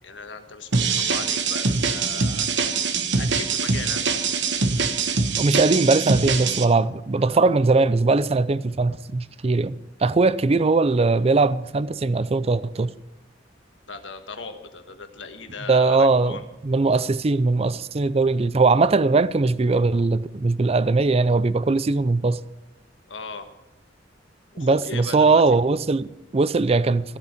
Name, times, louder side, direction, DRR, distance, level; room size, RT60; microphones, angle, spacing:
voice 1, 0.0-4.1 7.2-7.5 13.9-16.5 23.1-23.5 24.5-25.4, left 4 dB, 75° left, 1.5 m, -38 dB
sound 1, 0.7-6.6, right 4 dB, 70° right, 1.2 m, -23 dB
voice 2, 5.0-12.9 15.7-16.4 16.6-22.4 24.6-27.2, right 3 dB, 35° right, 0.5 m, -20 dB
15.0 x 8.4 x 6.7 m
head